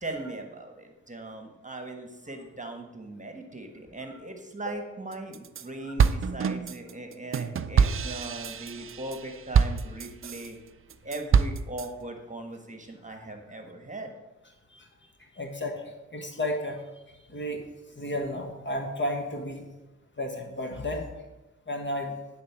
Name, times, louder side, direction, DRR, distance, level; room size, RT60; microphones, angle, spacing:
voice 1, 0.0-10.6 11.0-14.1, right 2 dB, 25° right, 4 dB, 1.5 m, -39 dB
sound 1, 5.1-5.6 6.0-10.5 10.9-11.9, right 6 dB, 45° right, 0.5 m, -25 dB
voice 2, 15.4-15.8 16.1-16.8 17.3-17.6 18.0-19.6 20.2-21.1 21.7-22.1, left 1 dB, 35° left, 3 dB, 1.5 m, -32 dB
10.0 x 4.0 x 5.9 m, 1.0 s
cardioid pair, 45°, 31 cm